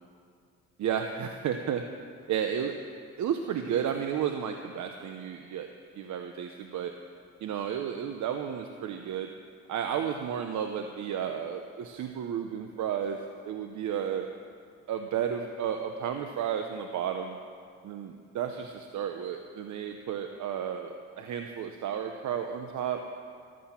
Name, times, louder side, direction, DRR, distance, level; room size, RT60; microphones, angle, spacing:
voice 1, 0.8-1.8 2.3-2.8 3.2-5.7 5.9-6.9 7.4-9.3 9.7-13.2 13.4-14.3 14.9-17.4 17.8-23.0, right 8 dB, 75° right, 5 dB, 1.0 m, -32 dB
15.0 x 13.5 x 5.9 m, 2.2 s
cardioid pair, 90°, 30 cm